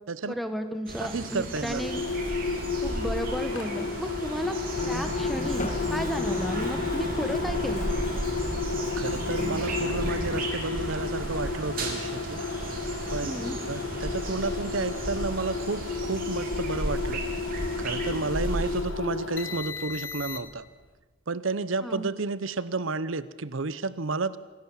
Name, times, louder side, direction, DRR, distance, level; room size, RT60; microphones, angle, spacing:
voice 1, 0.3-2.0 2.8-4.6 4.9-7.9 13.2-13.6 21.8-22.1, equal, ahead, 6 dB, 1.6 m, -33 dB
sound 1, 0.9-18.8, right 1 dB, 45° right, 3.9 m, -35 dB
voice 2, 1.1-1.8 9.0-12.4 13.1-13.3 13.7-17.2 17.8-20.7 21.3-24.4, right 3 dB, 85° right, 16 dB, 0.8 m, -31 dB
sound 2, 1.7-20.7, left 4 dB, 85° left, 2.1 m, -32 dB
Truck, 4.8-10.4, left 1 dB, 40° left, 2.4 m, -35 dB
26.0 x 17.5 x 7.3 m, 1.3 s
head